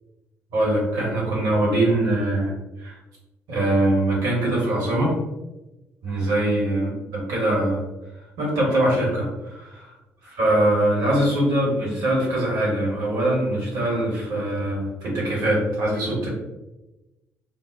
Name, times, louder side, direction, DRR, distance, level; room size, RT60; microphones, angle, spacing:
voice 1, 0.5-2.5 2.8-2.9 3.5-5.1 6.0-7.8 8.4-9.8 10.2-16.3, right 1 dB, 55° right, -4 dB, 1.2 m, -22 dB
3.9 x 2.0 x 2.4 m, 1.0 s
figure-of-eight pair, 45°, 7 cm